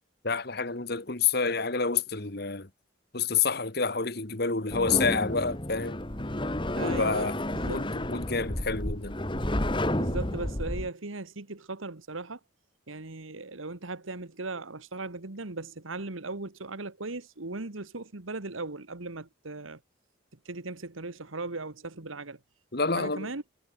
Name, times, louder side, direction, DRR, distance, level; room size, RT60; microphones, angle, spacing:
voice 1, 0.2-2.7 3.1-6.0 6.8-7.3 7.6-9.2 22.7-23.3, left 5 dB, 50° left, 1.9 m, -28 dB
sound 1, 4.7-10.9, left 1 dB, 25° left, 2.0 m, -31 dB
voice 2, 6.8-7.9 9.9-12.4 12.9-19.8 20.5-22.4 22.9-23.4, right 3 dB, 90° right, 1.7 m, -38 dB
head